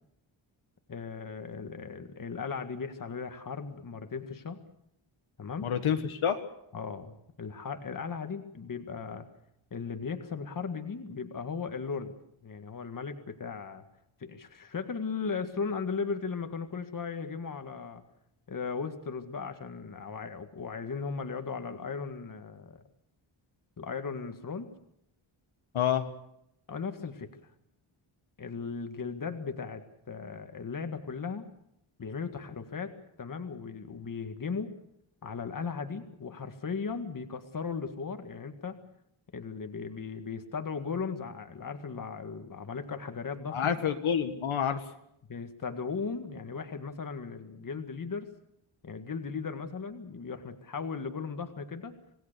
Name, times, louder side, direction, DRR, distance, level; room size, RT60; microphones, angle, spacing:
voice 1, 0.9-4.6 5.4-5.7 6.7-9.3 9.7-12.1 12.4-13.8 14.2-18.0 18.5-22.8 23.8-24.7 26.7-27.5 28.4-31.5 32.0-34.7 35.2-38.8 39.3-43.7 45.3-48.3 48.8-52.0, left 5 dB, 40° left, 7 dB, 1.9 m, -37 dB
voice 2, 5.6-6.4 25.7-26.1 43.5-44.8, left 8 dB, 70° left, 6 dB, 1.7 m, -28 dB
26.5 x 19.0 x 6.8 m, 0.78 s
wide cardioid pair, 160°, 50 cm